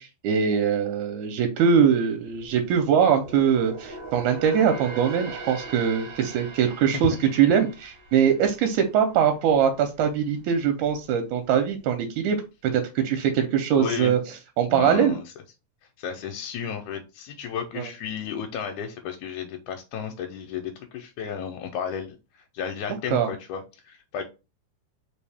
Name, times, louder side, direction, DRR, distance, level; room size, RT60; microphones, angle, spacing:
voice 1, 0.0-14.2 14.6-15.2 17.8-17.9 23.1-23.3, right 7 dB, 80° right, 6 dB, 2.0 m, -22 dB
sound 1, 2.1-9.6 10.0-10.2 10.8-11.5 11.8-11.9, right 3 dB, 60° right, 1.2 m, -41 dB
voice 2, 13.7-14.1 14.7-15.2 16.0-24.2, left 7 dB, 85° left, 3 dB, 2.0 m, -33 dB
4.5 x 2.7 x 3.4 m, 0.29 s
omnidirectional pair, 3.5 m